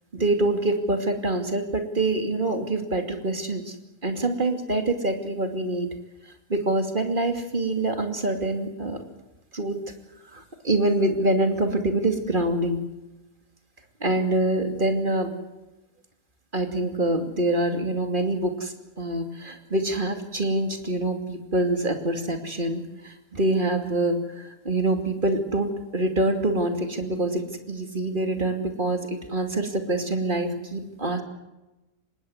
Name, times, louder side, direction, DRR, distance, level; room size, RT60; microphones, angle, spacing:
voice 1, 0.1-3.7 4.0-5.9 6.5-9.0 9.5-9.8 10.3-12.8 14.0-15.3 16.5-31.2, right 1 dB, 40° right, 6 dB, 2.9 m, -25 dB
25.5 x 20.0 x 8.0 m, 1.0 s
omnidirectional pair, 1.4 m